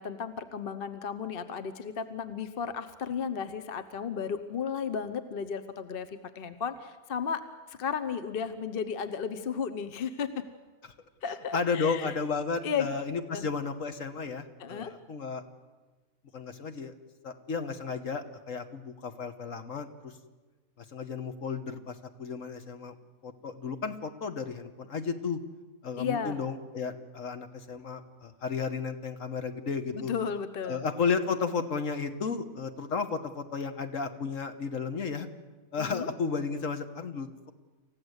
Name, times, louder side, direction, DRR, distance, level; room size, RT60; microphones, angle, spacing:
voice 1, 0.0-6.1 6.3-7.4 7.7-10.4 11.2-12.1 12.6-12.9 13.3-13.4 14.6-14.9 26.0-26.4 29.9-30.8 35.8-36.1, left 7 dB, 45° left, 10 dB, 1.0 m, -34 dB
voice 2, 11.5-15.4 16.3-16.9 17.2-20.1 20.8-23.0 23.2-25.4 25.8-30.1 30.6-35.3 35.7-37.3, left 5 dB, 60° left, 7 dB, 1.6 m, -33 dB
28.0 x 15.0 x 8.1 m, 1.3 s
omnidirectional pair, 1.6 m